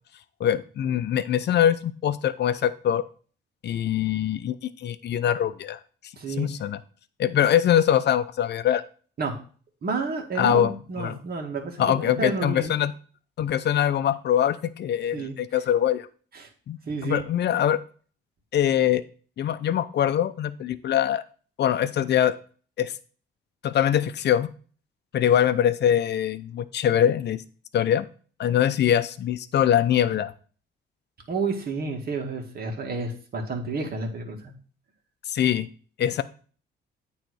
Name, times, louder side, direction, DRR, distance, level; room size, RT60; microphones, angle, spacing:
voice 1, 0.4-3.0 3.6-5.8 6.4-6.8 7.2-8.8 10.4-10.7 11.0-11.2 11.8-12.9 13.4-16.1 16.7-17.8 18.5-19.0 19.4-21.2 21.6-22.3 22.8-22.9 23.6-24.5 25.1-27.4 27.7-28.1 28.4-30.3 35.3-35.7 36.0-36.2, left 10 dB, 60° left, 13 dB, 0.6 m, -23 dB
voice 2, 6.2-6.5 9.2-9.4 9.8-12.7 15.1-15.4 16.3-16.5 16.9-17.2 31.3-34.6, right 4 dB, 50° right, 2 dB, 1.9 m, -30 dB
9.1 x 3.3 x 6.4 m, 0.41 s
cardioid pair, 90°, 20 cm